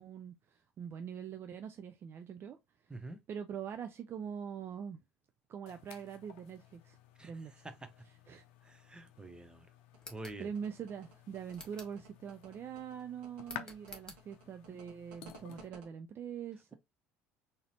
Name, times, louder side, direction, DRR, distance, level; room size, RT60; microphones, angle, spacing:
voice 1, 0.0-2.6 3.3-5.0 5.5-7.0 7.2-7.7 8.3-8.4 10.4-16.8, right 7 dB, 35° right, 0.4 m, -43 dB
sound 1, 5.7-15.7, left 11 dB, 60° left, 0.6 m, -54 dB
voice 2, 8.6-9.7 10.1-10.5, right 2 dB, 15° right, 0.8 m, -46 dB
sound 2, 9.9-15.9, right 6 dB, 65° right, 1.0 m, -56 dB
sound 3, 10.0-10.4 11.5-12.0 13.4-14.2, left 2 dB, 10° left, 1.3 m, -51 dB
3.9 x 2.7 x 2.9 m
figure-of-eight pair, 60°, 7 cm